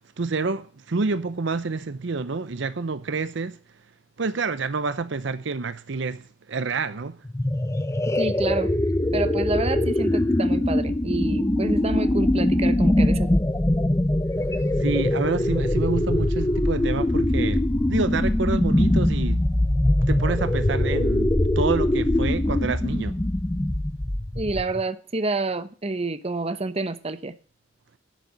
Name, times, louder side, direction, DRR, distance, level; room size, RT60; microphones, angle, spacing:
voice 1, 0.0-3.6 4.2-7.2 14.8-19.5 20.1-23.2, right 4 dB, 65° right, 0.7 m, -28 dB
sound 1, 7.3-24.8, left 1 dB, 15° left, 0.6 m, -22 dB
voice 2, 8.1-8.7 9.1-13.4 24.4-27.3, right 2 dB, 30° right, 0.9 m, -28 dB
12.0 x 6.7 x 7.5 m
head